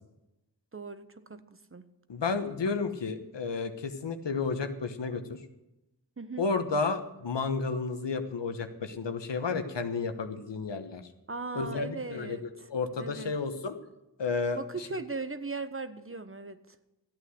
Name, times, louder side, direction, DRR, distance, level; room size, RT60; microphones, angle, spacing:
voice 1, 0.7-1.4 1.7-1.8 6.2-6.5 11.3-12.7 13.0-13.3 14.5-16.8, right 3 dB, 30° right, 11 dB, 1.1 m, -38 dB
voice 2, 2.1-5.4 6.4-11.0 11.5-12.4 12.7-13.7 14.2-14.6, left 4 dB, 85° left, 8 dB, 1.2 m, -32 dB
13.5 x 8.7 x 7.8 m, 0.95 s
cardioid pair, 50°, 42 cm